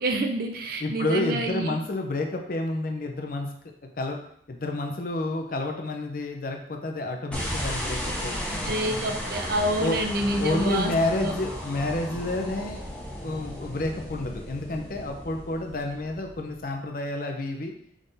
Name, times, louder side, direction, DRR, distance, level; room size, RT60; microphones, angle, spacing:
voice 1, 0.0-1.7 8.6-11.4, right 1 dB, 50° right, 3 dB, 0.6 m, -28 dB
voice 2, 0.8-3.5 3.8-4.2 4.5-8.7 9.8-10.0 10.4-12.8 13.2-17.7, left 2 dB, 50° left, 4 dB, 0.6 m, -29 dB
sound 1, 7.3-16.7, equal, 5° left, 0.8 m, -34 dB
3.7 x 3.4 x 4.0 m, 0.69 s
head